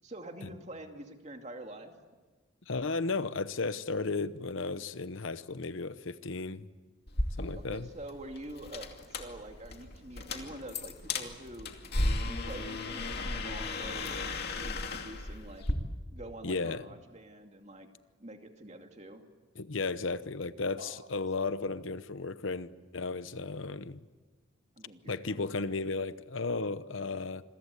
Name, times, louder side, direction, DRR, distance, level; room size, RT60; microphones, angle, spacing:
voice 1, 0.0-1.9 7.6-11.7 12.2-14.2 14.5-15.6 16.1-17.9 18.2-19.2 20.8-21.2 24.8-25.8, right 1 dB, 35° right, 4 dB, 2.5 m, -46 dB
voice 2, 2.7-6.7 7.4-7.9 16.4-16.8 19.6-24.0 25.1-27.4, left 3 dB, 75° left, 13 dB, 0.9 m, -34 dB
sound 1, 7.1-15.7, left 2 dB, 50° left, 2.5 m, -35 dB
27.5 x 22.0 x 8.4 m, 1.3 s
head